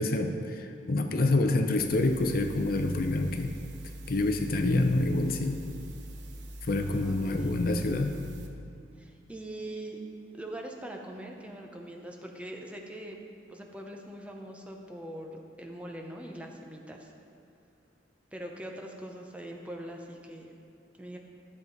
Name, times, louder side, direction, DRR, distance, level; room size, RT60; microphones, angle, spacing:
voice 1, 0.0-3.5 4.1-5.6 6.6-8.2, left 2 dB, 50° left, 5 dB, 0.6 m, -27 dB
sound 1, 1.7-8.5, right 1 dB, 70° right, 0.9 m, -43 dB
voice 2, 6.8-7.6 9.0-10.0 10.3-17.1 18.3-20.6 21.0-21.2, right 1 dB, 5° right, 1 dB, 0.7 m, -42 dB
12.5 x 7.3 x 3.9 m, 2.5 s
head